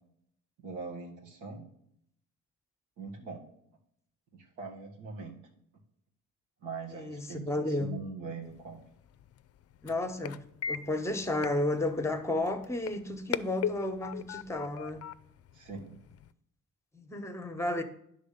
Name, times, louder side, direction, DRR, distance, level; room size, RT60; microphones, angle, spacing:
voice 1, 0.6-1.7 3.0-3.4 4.3-5.4 6.6-8.8 15.5-16.0, right 4 dB, 90° right, 0 dB, 1.8 m, -42 dB
voice 2, 6.9-8.0 9.8-10.4 10.7-15.0 16.9-17.8, left 2 dB, 10° left, 8 dB, 1.1 m, -32 dB
sound 1, 8.4-16.3, left 9 dB, 55° left, 0.5 m, -41 dB
10.0 x 3.9 x 6.7 m, 0.74 s
cardioid pair, 90°, 30 cm